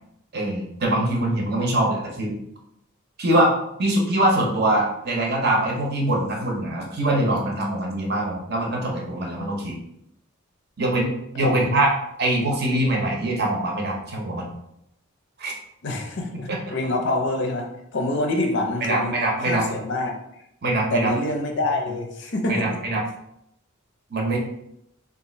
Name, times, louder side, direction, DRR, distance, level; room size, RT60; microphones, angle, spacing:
voice 1, 0.3-2.4 3.2-3.5 3.8-9.7 10.8-11.9 12.2-14.5 15.4-15.5 16.5-16.6 18.8-19.6 20.6-21.1 22.5-23.0 24.1-24.4, right 1 dB, 45° right, -1 dB, 0.7 m, -23 dB
voice 2, 11.3-11.7 15.8-20.1 20.9-22.8, left 2 dB, 50° left, 3 dB, 0.5 m, -26 dB
2.6 x 2.4 x 4.1 m, 0.79 s
head